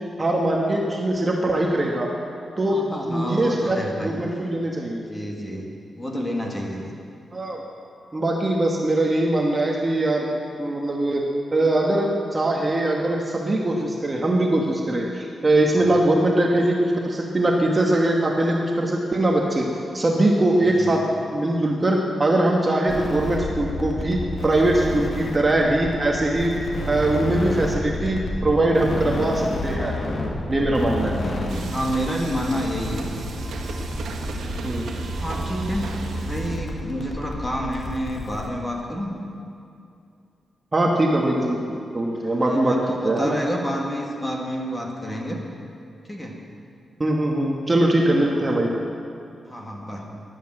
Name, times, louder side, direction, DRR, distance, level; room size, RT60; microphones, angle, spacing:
voice 1, 0.0-2.1 2.6-5.0 7.3-7.6 8.1-10.3 10.6-19.7 19.9-30.0 30.5-31.2 34.6-34.9 40.7-42.7 43.0-43.4 47.0-48.7, right 1 dB, 20° right, -1 dB, 1.3 m, -22 dB
voice 2, 2.7-4.2 5.1-6.9 15.7-16.1 20.7-21.0 30.8-33.1 34.4-35.8 36.2-39.2 42.2-45.4 46.1-46.4 48.3-48.6 49.5-50.0, equal, 10° left, 0 dB, 1.8 m, -29 dB
sound 1, 22.9-38.5, left 1 dB, 50° left, 1.8 m, -31 dB
sound 2, 31.5-36.6, right 3 dB, 80° right, 1.4 m, -33 dB
13.5 x 11.0 x 7.7 m, 2.5 s
wide cardioid pair, 155°, 0 cm